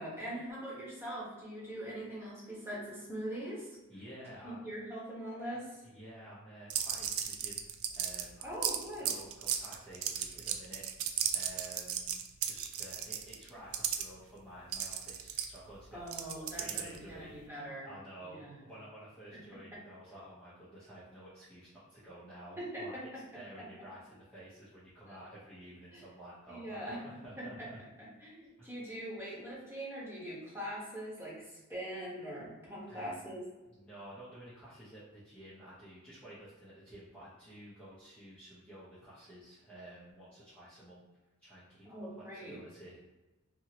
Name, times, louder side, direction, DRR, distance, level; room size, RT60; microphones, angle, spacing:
voice 1, 0.0-3.8 4.4-5.8 8.4-9.2 15.9-17.9 18.2-18.6 19.7-19.8 22.6-23.2 23.6-23.7 25.9-26.0 26.5-27.7 28.2-33.5 41.8-42.6, right 1 dB, 10° right, -7 dB, 1.1 m, -42 dB
voice 2, 3.9-4.7 5.8-8.5 9.0-10.9 11.3-16.3 16.6-27.6 28.6-28.7 32.9-33.2 33.6-41.1 41.4-41.9 42.2-43.0, right 1 dB, 5° left, -11 dB, 0.7 m, -51 dB
sound 1, 6.7-14.0 14.7-17.1, right 9 dB, 75° right, 0.3 m, -35 dB
2.8 x 2.7 x 2.9 m, 1.1 s
head